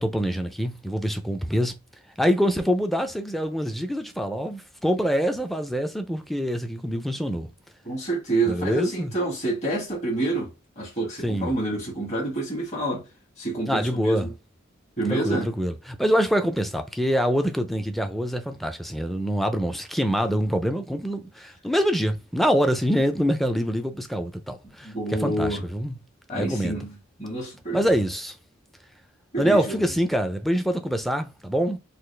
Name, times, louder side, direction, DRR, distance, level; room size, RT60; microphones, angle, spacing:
voice 1, 0.0-1.7 2.2-7.5 8.5-9.1 11.2-11.5 13.7-14.3 15.1-26.0 26.4-26.8 27.7-28.4 29.4-31.8, equal, ahead, 0.4 m, -25 dB
voice 2, 7.8-10.5 10.8-13.0 13.4-14.3 15.0-15.5 24.6-25.6 26.3-26.9 27.2-27.9 29.3-29.8, right 2 dB, 35° left, 1.5 m, -28 dB
4.0 x 2.4 x 3.2 m
head